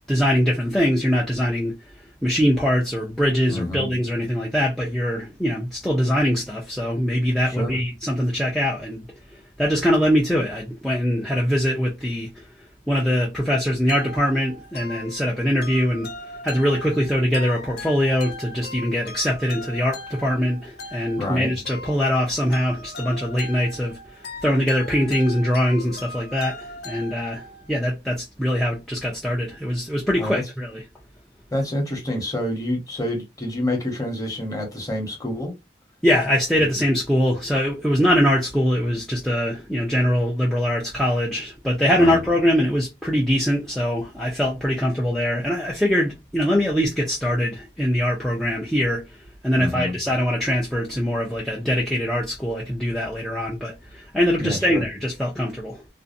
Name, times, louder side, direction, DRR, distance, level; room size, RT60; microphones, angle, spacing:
voice 1, 0.1-1.9 2.2-9.1 9.3-12.5 12.9-16.1 16.4-30.8 36.0-55.8, equal, ahead, 0.5 m, -22 dB
voice 2, 3.5-3.9 7.5-7.8 21.2-21.5 30.2-30.4 31.5-35.5 41.9-42.2 49.6-49.9 54.4-54.8, left 1 dB, 20° left, 0.9 m, -27 dB
sound 1, 13.9-27.7, left 2 dB, 60° left, 0.5 m, -39 dB
2.6 x 2.1 x 2.5 m
head